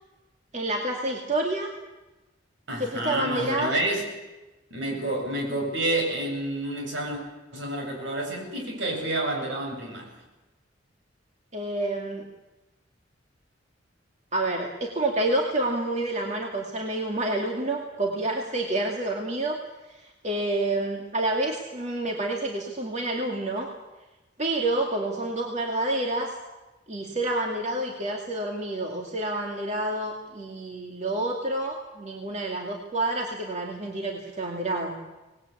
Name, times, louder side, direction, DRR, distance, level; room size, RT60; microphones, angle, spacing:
voice 1, 0.5-1.7 2.8-3.7 11.5-12.3 14.3-19.6 19.9-23.7 24.4-26.3 26.9-35.0, right 2 dB, 40° right, 1 dB, 2.4 m, -28 dB
voice 2, 2.7-4.0 4.7-7.2 7.5-10.1, right 1 dB, 70° right, 2 dB, 7.7 m, -29 dB
25.0 x 20.0 x 8.6 m, 1.1 s
head